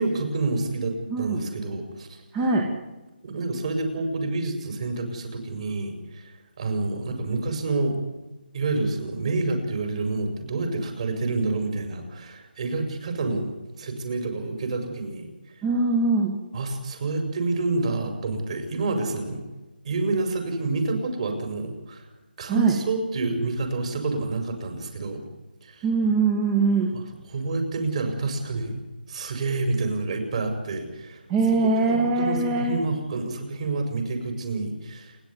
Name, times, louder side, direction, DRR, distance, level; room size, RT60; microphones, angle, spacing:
voice 1, 0.0-2.2 3.2-6.3 6.6-8.0 8.5-13.5 13.8-15.5 16.5-19.4 19.8-22.1 22.4-25.2 25.6-25.9 26.9-28.8 29.1-31.2 31.5-35.2, right 3 dB, 40° right, 6 dB, 6.0 m, -28 dB
voice 2, 1.1-1.4 2.3-2.6 15.6-16.3 22.5-22.8 25.8-26.9 31.3-32.8, right 3 dB, 15° right, 1 dB, 2.1 m, -22 dB
28.5 x 11.5 x 9.6 m, 1.1 s
hypercardioid pair, 170°, 5 cm